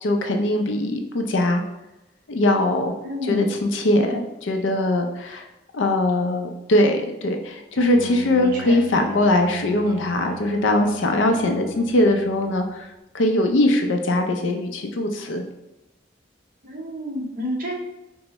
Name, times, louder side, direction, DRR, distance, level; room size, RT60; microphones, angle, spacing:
voice 1, 0.0-1.6 2.3-2.9 3.2-5.5 5.7-12.9 13.1-15.4, left 1 dB, 90° left, 4 dB, 0.5 m, -21 dB
voice 2, 3.0-3.5 8.7-8.8 16.6-17.7, equal, 50° right, -1 dB, 0.8 m, -29 dB
Bowed string instrument, 7.8-12.7, right 3 dB, 90° right, 0.6 m, -40 dB
4.4 x 2.0 x 2.9 m, 0.97 s
head